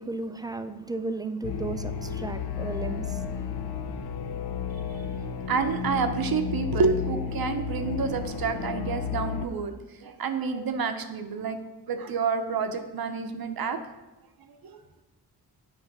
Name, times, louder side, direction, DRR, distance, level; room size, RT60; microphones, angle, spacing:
voice 1, 0.0-3.2, right 3 dB, 10° right, 0.3 m, -34 dB
sound 1, 1.4-9.5, left 6 dB, 75° left, 0.6 m, -32 dB
voice 2, 5.5-9.7 10.0-11.6 11.9-13.8 14.6-14.8, right 5 dB, 65° right, 0.7 m, -28 dB
8.6 x 3.2 x 5.9 m
wide cardioid pair, 100°, 39 cm